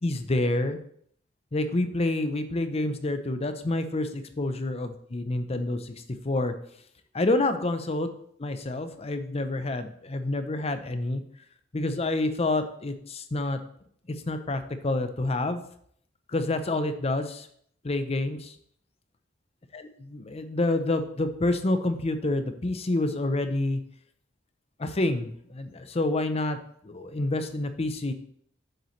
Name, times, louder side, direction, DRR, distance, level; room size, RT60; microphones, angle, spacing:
voice 1, 0.0-0.8 1.5-5.9 6.2-6.5 7.1-8.1 8.4-11.2 11.7-13.6 14.3-15.6 16.3-17.5 17.8-18.5 19.7-23.8 24.8-26.6 26.8-28.1, left 2 dB, 30° left, 9 dB, 0.6 m, -28 dB
8.4 x 6.7 x 3.2 m, 0.65 s
head